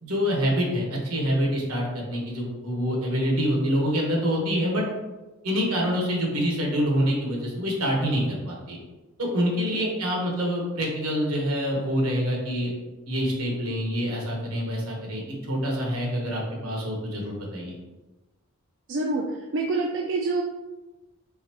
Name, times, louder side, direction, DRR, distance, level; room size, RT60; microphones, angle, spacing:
voice 1, 0.0-4.8 5.4-8.8 9.2-12.7 13.1-17.7, equal, 85° right, -1 dB, 1.2 m, -26 dB
voice 2, 18.9-19.3 19.5-20.4, right 3 dB, 55° right, 0 dB, 0.4 m, -26 dB
3.9 x 3.6 x 2.9 m, 1.2 s
head